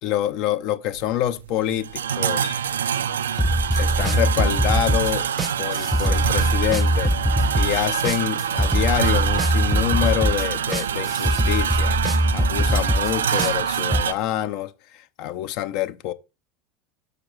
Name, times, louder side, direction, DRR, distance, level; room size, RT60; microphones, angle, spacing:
voice 1, 0.0-2.6 3.8-5.3 5.6-7.1 7.6-12.0 12.3-16.1, left 13 dB, 60° left, 0.6 m, -26 dB
sound 1, 0.9-14.1, right 8 dB, 85° right, 0.4 m, -25 dB
sound 2, 3.4-14.0, equal, 10° right, 0.4 m, -22 dB
6.2 x 5.0 x 4.8 m
hypercardioid pair, 80°, 0 cm